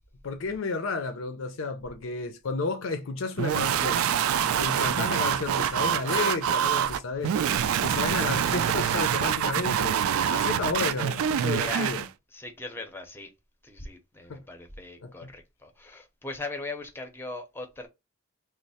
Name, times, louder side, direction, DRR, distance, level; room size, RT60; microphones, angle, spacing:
voice 1, 0.2-4.1 4.4-7.4 7.8-10.0 10.3-12.1 14.3-14.4 15.0-15.3, left 4 dB, 70° left, 0.5 m, -32 dB
sound 1, 3.4-12.1, right 9 dB, 80° right, 0.3 m, -26 dB
voice 2, 11.5-11.9 12.3-13.3 13.6-17.9, left 2 dB, 10° left, 0.6 m, -39 dB
3.1 x 2.0 x 4.1 m
head